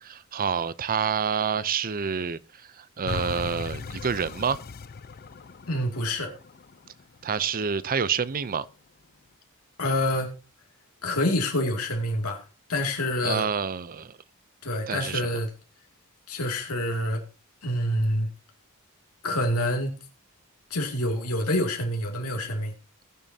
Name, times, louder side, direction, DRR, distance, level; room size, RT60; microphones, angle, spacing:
voice 1, 0.0-4.6 7.2-8.7 13.2-14.2 14.9-15.3, right 6 dB, 40° right, 0.6 m, -28 dB
sound 1, 3.0-8.1 8.6-8.7, left 4 dB, 45° left, 0.5 m, -38 dB
voice 2, 5.7-6.3 9.8-10.4 11.0-12.4 12.7-13.5 14.6-15.5 16.3-17.2 17.6-18.3 19.2-20.0 20.7-22.7, left 1 dB, 75° left, 2.6 m, -27 dB
20.5 x 7.4 x 2.8 m
head